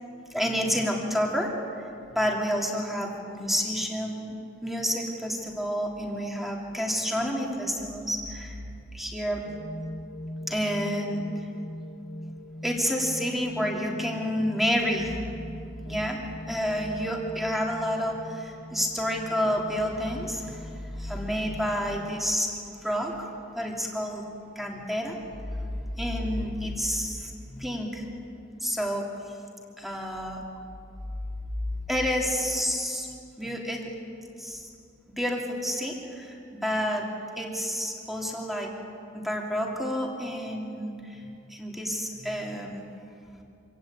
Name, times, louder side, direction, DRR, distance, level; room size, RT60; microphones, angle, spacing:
voice 1, 0.3-1.5 1.8-4.2 4.6-8.6 8.9-9.4 10.5-11.2 12.6-15.2 15.9-16.2 16.5-20.7 21.0-24.2 24.5-25.2 26.0-28.0 28.6-29.1 29.8-30.4 31.9-33.1 33.4-33.9 34.4-34.7 35.2-37.1 37.4-38.7 39.1-42.8, equal, ahead, 0 dB, 3.0 m, -29 dB
sound 1, 9.4-22.2, left 1 dB, 25° left, 2.3 m, -42 dB
26.0 x 16.5 x 8.7 m, 2.5 s
head